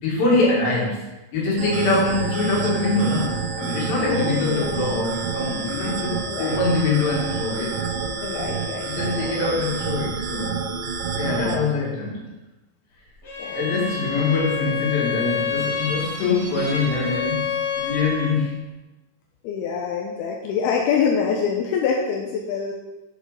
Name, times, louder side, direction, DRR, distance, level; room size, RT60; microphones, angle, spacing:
voice 1, 0.0-7.8 8.8-10.6 11.2-12.3 13.5-18.5, left 3 dB, 60° left, -3 dB, 3.8 m, -24 dB
sound 1, 1.6-11.6, right 5 dB, 80° right, 2.0 m, -28 dB
voice 2, 4.0-5.0 6.1-6.6 8.2-9.6 11.3-11.7 13.4-13.8 19.4-22.7, left 6 dB, 75° left, 0 dB, 2.4 m, -26 dB
Bowed string instrument, 13.2-18.4, left 6 dB, 40° left, 1.6 m, -28 dB
10.0 x 5.3 x 5.1 m, 1.0 s
omnidirectional pair, 5.2 m